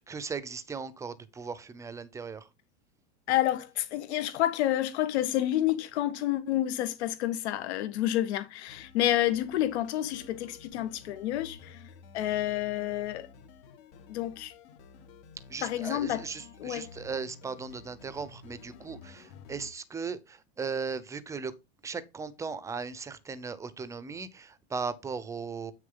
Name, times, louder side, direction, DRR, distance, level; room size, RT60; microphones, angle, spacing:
voice 1, 0.0-2.5 15.5-21.5 21.8-25.7, right 5 dB, 10° right, 0.6 m, -37 dB
voice 2, 3.3-11.8 12.1-13.3 14.1-14.5 15.6-16.2 16.6-16.9, left 13 dB, 75° left, 1.6 m, -29 dB
sound 1, 8.7-19.7, left 5 dB, 55° left, 1.8 m, -52 dB
8.6 x 6.5 x 3.8 m
supercardioid pair, 155°, 34 cm